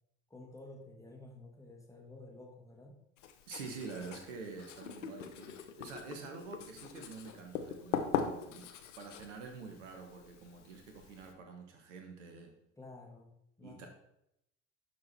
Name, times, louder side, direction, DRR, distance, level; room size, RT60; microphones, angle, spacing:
voice 1, 0.3-3.0 12.8-13.9, left 2 dB, 10° left, 1 dB, 2.0 m, -52 dB
Writing, 3.2-11.3, left 8 dB, 70° left, 1.0 m, -42 dB
voice 2, 3.5-12.5 13.6-13.9, right 4 dB, 75° right, 3 dB, 1.3 m, -47 dB
Gurgling / Sink (filling or washing), 4.8-9.3, left 5 dB, 90° left, 0.6 m, -50 dB
11.5 x 4.6 x 4.3 m, 0.81 s
figure-of-eight pair, 60°, 37 cm